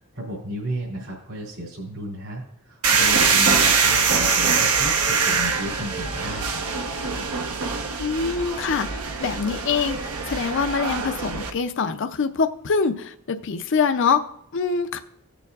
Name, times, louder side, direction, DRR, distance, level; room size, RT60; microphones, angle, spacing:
voice 1, 0.0-6.6, equal, 70° right, 3.0 m, -33 dB
sound 1, 2.8-11.5, right 5 dB, 90° right, 1.0 m, -23 dB
voice 2, 8.0-10.0 10.2-14.2 14.5-15.0, left 5 dB, 60° left, 0.5 m, -24 dB
16.5 x 6.9 x 2.4 m
head